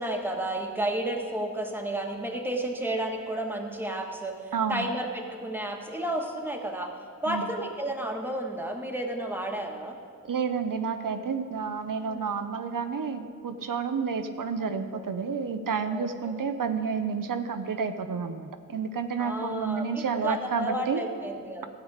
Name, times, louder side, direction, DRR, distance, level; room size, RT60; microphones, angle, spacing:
voice 1, 0.0-4.4 4.7-6.9 7.2-10.0 12.0-12.3 14.7-15.1 15.9-16.3 19.2-21.7, right 1 dB, 5° right, 1 dB, 1.3 m, -32 dB
voice 2, 4.5-4.9 7.3-7.5 10.3-21.0, right 5 dB, 90° right, 8 dB, 0.6 m, -30 dB
14.0 x 8.0 x 4.8 m, 2.3 s
wide cardioid pair, 55°, 32 cm